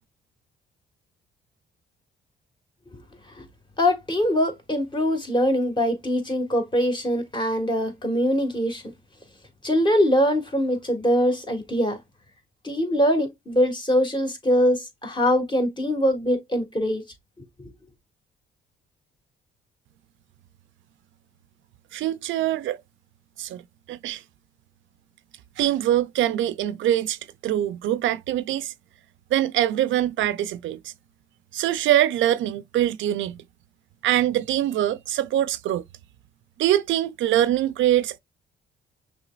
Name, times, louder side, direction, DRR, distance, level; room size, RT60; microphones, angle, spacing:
voice 1, 2.9-3.5 3.8-8.8 9.6-12.0 12.6-17.0 17.4-17.7, equal, 25° left, 1.7 m, -23 dB
voice 2, 21.9-22.8 23.4-23.6 23.9-24.2 25.6-28.7 29.3-30.9 31.5-33.4 34.0-35.8 36.6-38.2, right 12 dB, 75° right, 0.5 m, -23 dB
6.1 x 3.4 x 2.4 m
cardioid pair, 90°, 20 cm